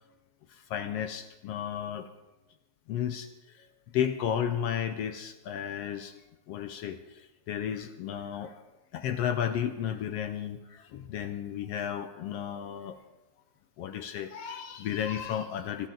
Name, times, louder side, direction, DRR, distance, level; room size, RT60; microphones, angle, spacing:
voice 1, 0.7-2.1 2.9-3.3 3.9-6.1 6.5-7.0 7.5-8.5 8.9-13.0 13.8-15.9, left 9 dB, 75° left, 9 dB, 1.4 m, -33 dB
26.0 x 12.0 x 3.8 m, 1.0 s
omnidirectional pair, 3.5 m